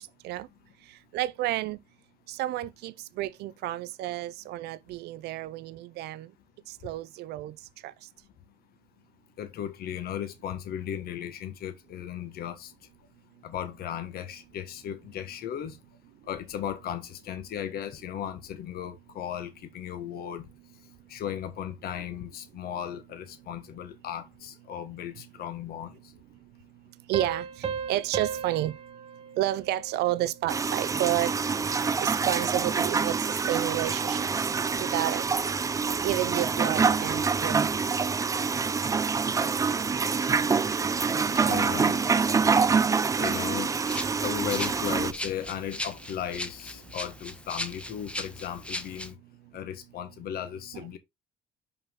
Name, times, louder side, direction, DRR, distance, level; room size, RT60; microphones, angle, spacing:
voice 1, 1.1-1.8 2.3-6.3 6.8-7.5 7.8-7.9 27.1-27.4 27.9-28.7 29.4-31.3 32.0-34.3 34.8-35.2 36.0-37.6 50.7-50.8, right 15 dB, 75° right, 0.5 m, -30 dB
voice 2, 9.4-12.7 13.4-15.8 16.3-20.5 21.1-26.0 41.4-42.0 43.1-43.7 44.2-49.2 49.5-51.0, left 9 dB, 65° left, 1.5 m, -36 dB
Piano, 27.1-30.4, right 6 dB, 35° right, 0.8 m, -36 dB
sound 1, 30.5-45.1, right 5 dB, 20° right, 0.4 m, -26 dB
Rattle (instrument), 43.9-49.1, left 1 dB, 5° left, 1.0 m, -38 dB
5.6 x 5.6 x 3.6 m
cardioid pair, 110°, 17 cm